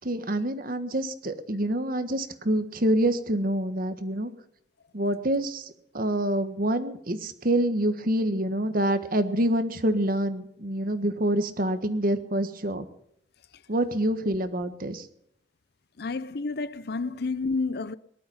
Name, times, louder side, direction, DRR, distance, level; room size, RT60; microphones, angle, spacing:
voice 1, 0.0-4.3 4.9-12.9 13.7-15.1, right 1 dB, 50° right, 1.5 m, -26 dB
voice 2, 16.0-17.9, left 3 dB, 60° left, 0.7 m, -30 dB
19.0 x 12.0 x 5.7 m
head